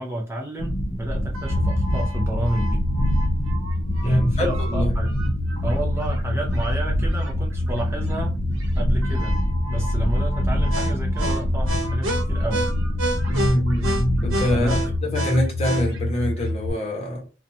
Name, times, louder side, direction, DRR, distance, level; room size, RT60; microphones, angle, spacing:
voice 1, 0.0-2.8 4.0-5.2 5.6-8.4 8.8-9.3 9.7-12.7 14.5-14.9, right 1 dB, 15° right, 0.5 m, -31 dB
sound 1, 0.6-15.0, equal, 65° left, 0.7 m, -26 dB
sound 2, 1.3-16.7, left 1 dB, 75° right, 0.9 m, -27 dB
voice 2, 4.0-4.9 13.3-14.7 15.1-17.2, equal, 30° left, 0.9 m, -24 dB
2.7 x 2.2 x 2.6 m
head